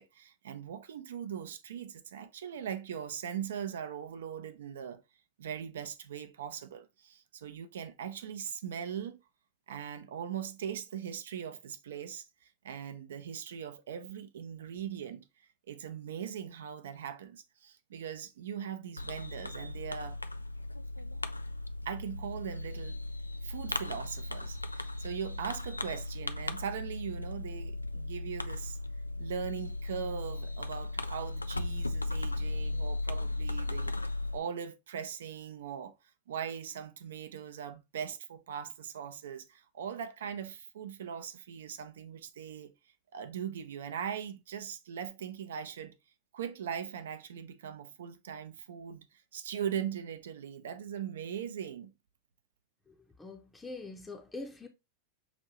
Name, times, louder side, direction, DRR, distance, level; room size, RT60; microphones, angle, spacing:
voice 1, 0.0-5.0 5.4-9.2 9.7-15.2 15.7-20.2 21.9-23.0 23.4-28.8 29.2-34.0 34.3-35.9 36.3-42.7 43.1-46.0 46.3-49.1 49.3-51.9, right 8 dB, 60° right, 0.6 m, -40 dB
Fireworks, 19.0-34.4, left 2 dB, 85° left, 0.3 m, -37 dB
voice 2, 52.9-54.7, left 3 dB, 10° left, 0.7 m, -44 dB
6.0 x 2.7 x 2.9 m
figure-of-eight pair, 90°, 0 cm